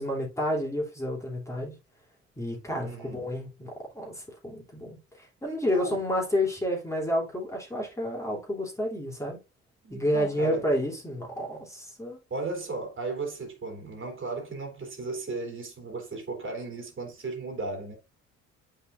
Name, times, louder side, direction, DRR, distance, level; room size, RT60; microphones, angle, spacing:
voice 1, 0.0-1.7 2.4-3.7 3.9-5.0 5.4-9.4 9.9-12.2, equal, 10° left, 3.1 m, -30 dB
voice 2, 2.8-3.3 5.4-6.0 9.8-10.7 12.3-17.9, right 3 dB, 40° right, 3.3 m, -35 dB
8.3 x 5.8 x 2.5 m
cardioid pair, 90°, 30 cm